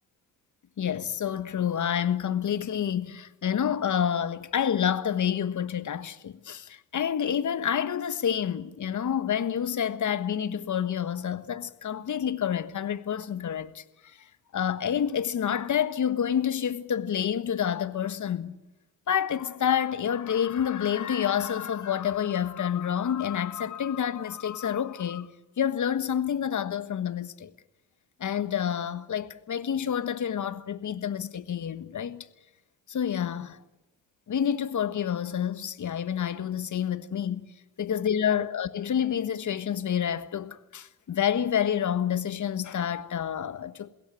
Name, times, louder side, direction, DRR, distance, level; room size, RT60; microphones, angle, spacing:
voice 1, 0.8-14.2 14.5-18.6 19.1-27.5 28.2-32.2 32.9-33.6 34.3-37.4 37.8-43.9, left 9 dB, 45° left, 1.5 m, -28 dB
22.0 x 17.0 x 9.0 m
hypercardioid pair, 50°, 40 cm